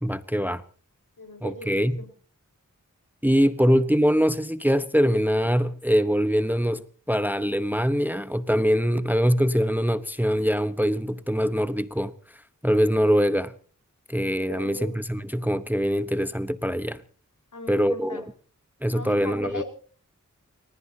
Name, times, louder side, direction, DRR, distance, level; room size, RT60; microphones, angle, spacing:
voice 1, 0.0-0.6 1.4-2.0 3.2-13.5 14.1-17.0 17.7-18.2 18.8-19.6, equal, 5° right, 1.0 m, -23 dB
voice 2, 1.2-2.1 14.5-14.9 17.5-18.2 18.9-19.6, left 2 dB, 65° left, 4.8 m, -38 dB
29.5 x 15.0 x 2.8 m
wide cardioid pair, 50°, 32 cm